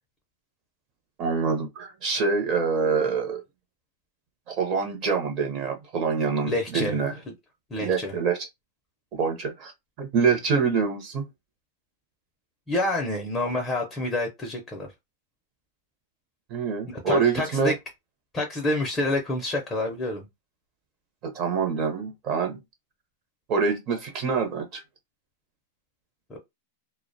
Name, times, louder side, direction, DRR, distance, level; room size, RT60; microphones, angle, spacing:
voice 1, 1.2-3.4 4.5-7.2 7.8-8.5 9.1-9.7 10.0-11.3 16.5-17.7 21.2-22.6 23.5-24.8, right 5 dB, 35° right, 0.6 m, -25 dB
voice 2, 6.5-7.0 7.7-8.1 12.7-14.9 16.9-17.7 18.3-20.3 26.3-26.4, left 1 dB, 15° left, 0.4 m, -28 dB
2.4 x 2.0 x 2.6 m
supercardioid pair, 160°, 0 cm